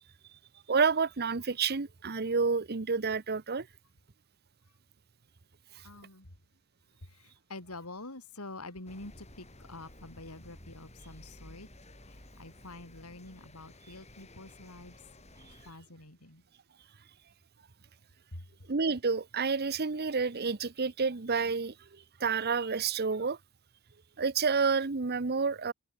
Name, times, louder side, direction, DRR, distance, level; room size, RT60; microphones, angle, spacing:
voice 1, 0.7-3.7 18.7-21.7 22.2-23.4 24.2-25.7, right 5 dB, 45° right, 0.9 m, -29 dB
voice 2, 5.8-6.4 7.0-11.7 12.0-15.0 15.5-16.4 18.3-18.5, left 2 dB, 85° left, 4.7 m, -47 dB
sound 1, 8.9-15.7, left 1 dB, 30° left, 7.6 m, -53 dB
head